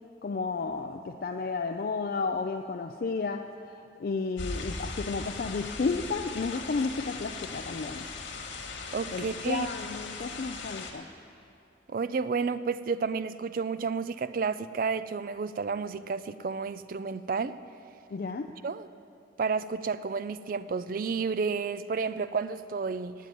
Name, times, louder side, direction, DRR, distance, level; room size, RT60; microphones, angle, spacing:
voice 1, 0.2-3.5 4.0-8.0 9.1-11.1 18.1-18.5, left 4 dB, 50° left, 5 dB, 0.4 m, -32 dB
sound 1, 4.4-10.9, left 3 dB, 85° left, 1.4 m, -39 dB
voice 2, 8.9-9.7 11.9-17.6 18.6-18.9 19.4-23.1, right 5 dB, 45° right, 14 dB, 0.3 m, -31 dB
9.1 x 8.4 x 9.3 m, 2.6 s
head